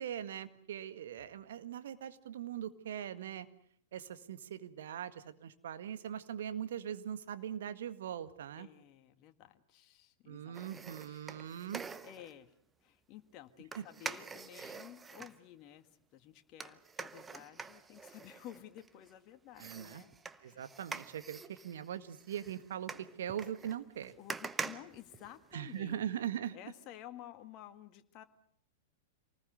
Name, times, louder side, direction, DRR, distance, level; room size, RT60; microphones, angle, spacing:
voice 1, 0.0-3.5 3.9-8.7 10.3-11.8 13.8-13.9 19.6-20.0 20.4-22.9 23.2-24.1 25.5-26.6, right 10 dB, 65° right, 11 dB, 1.8 m, -41 dB
voice 2, 8.6-11.7 12.0-12.5 12.8-20.7 24.2-26.1 26.5-28.2, left 12 dB, 40° left, 8 dB, 1.8 m, -53 dB
sound 1, 10.5-12.3 13.7-15.4 16.6-19.1 19.6-25.8 26.2-26.3, right 5 dB, 15° right, 1.1 m, -45 dB
27.5 x 20.0 x 8.0 m, 0.62 s
figure-of-eight pair, 100°, 0 cm